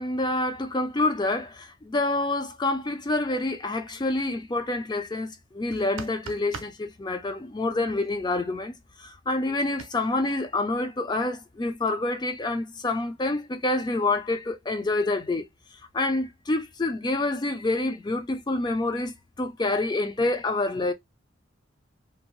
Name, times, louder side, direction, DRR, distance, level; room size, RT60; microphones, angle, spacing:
voice 1, 0.0-15.4 15.9-20.9, left 2 dB, 20° left, 0.3 m, -27 dB
sound 1, 5.7-6.8 9.8-9.9, right 5 dB, 85° right, 0.5 m, -39 dB
2.7 x 2.1 x 3.0 m
head